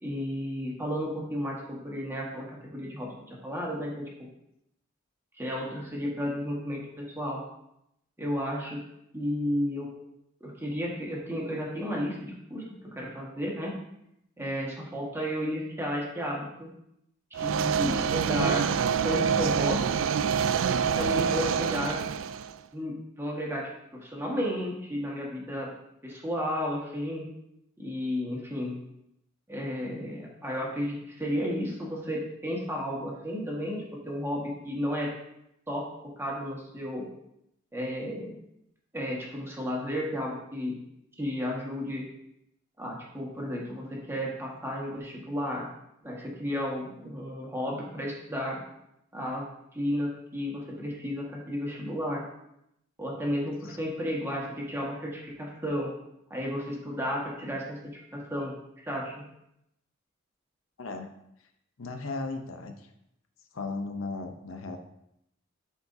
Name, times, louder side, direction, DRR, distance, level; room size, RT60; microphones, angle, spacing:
voice 1, 0.0-4.1 5.4-7.4 8.2-8.8 9.1-9.9 10.4-13.8 14.4-16.7 17.4-18.7 19.0-19.8 20.8-22.0 22.7-23.7 24.0-25.7 26.0-27.3 27.8-28.8 29.5-35.1 35.7-35.8 36.2-37.1 37.7-38.3 38.9-40.8 41.2-42.0 42.8-45.7 46.0-48.6 49.1-49.5 49.7-52.2 53.0-55.9 56.3-59.2, equal, 10° right, -3 dB, 1.6 m, -33 dB
sound 1, 17.3-22.5, right 7 dB, 70° right, 0.3 m, -26 dB
voice 2, 60.8-61.1 61.8-62.9 63.5-64.8, left 3 dB, 80° left, 5 dB, 0.8 m, -36 dB
12.0 x 4.7 x 2.7 m, 0.80 s
head